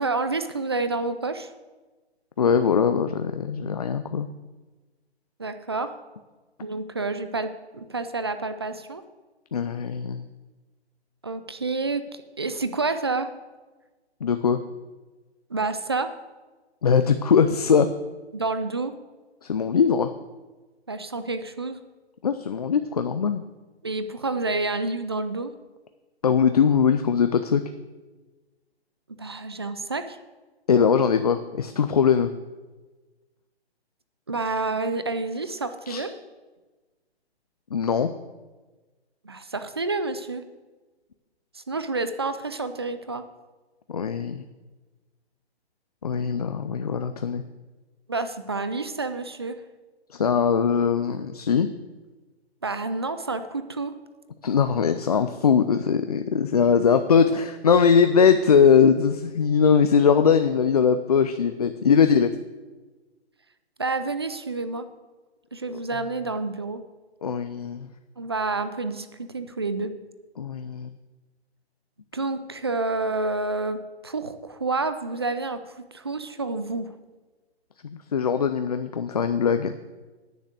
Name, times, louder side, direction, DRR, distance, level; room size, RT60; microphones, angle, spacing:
voice 1, 0.0-1.5 5.4-5.9 6.6-9.0 11.2-12.0 12.4-13.3 15.5-16.1 18.3-18.9 20.9-21.8 23.8-25.5 29.2-30.2 34.3-36.1 39.2-40.4 41.5-43.2 48.1-49.6 52.6-53.9 63.8-64.9 65.5-66.8 68.2-69.9 72.1-76.9, right 3 dB, 25° right, 11 dB, 0.4 m, -29 dB
voice 2, 2.4-4.3 9.5-10.2 14.2-14.6 16.8-17.9 19.4-20.1 22.2-23.4 26.2-27.6 30.7-32.3 35.9-36.0 37.7-38.1 43.9-44.4 46.0-47.4 50.1-51.7 54.4-62.3 65.7-65.8 67.2-67.9 70.4-70.9 77.8-79.8, left 6 dB, 40° left, 9 dB, 0.4 m, -21 dB
10.0 x 6.3 x 8.1 m, 1.2 s
hypercardioid pair, 160°, 33 cm